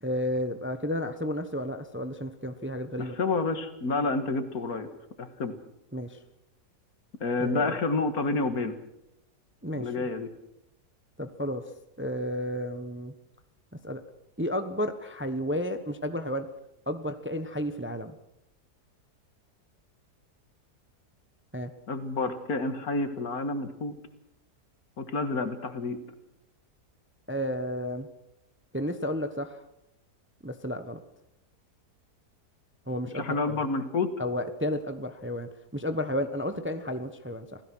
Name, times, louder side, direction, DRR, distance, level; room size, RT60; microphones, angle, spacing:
voice 1, 0.0-3.2 5.9-6.2 7.4-7.8 9.6-10.1 11.2-11.6 12.0-13.1 13.7-14.0 14.4-16.5 16.9-18.1 21.5-21.7 27.3-28.1 28.7-29.6 30.4-31.0 32.9-33.6 34.2-37.6, equal, 10° right, 9 dB, 0.9 m, -32 dB
voice 2, 3.0-4.9 5.2-5.5 7.2-8.7 9.8-10.3 21.9-23.9 25.0-26.0 33.1-34.1, left 3 dB, 65° left, 9 dB, 2.1 m, -29 dB
26.5 x 17.0 x 6.2 m, 0.86 s
omnidirectional pair, 1.7 m